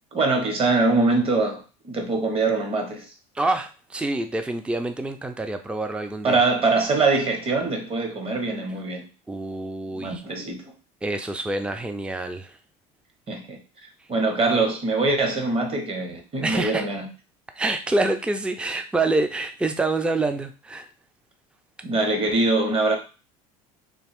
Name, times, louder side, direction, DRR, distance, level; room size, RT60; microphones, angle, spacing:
voice 1, 0.1-3.1 6.2-9.1 9.9-10.7 13.3-13.6 14.1-17.1 21.8-23.0, right 3 dB, 35° right, 4 dB, 1.1 m, -23 dB
voice 2, 3.3-6.4 9.3-10.2 11.0-12.6 16.4-16.9 17.6-20.9, right 2 dB, 5° right, 8 dB, 0.4 m, -26 dB
3.4 x 2.5 x 3.5 m, 0.33 s
supercardioid pair, 100°, 18 cm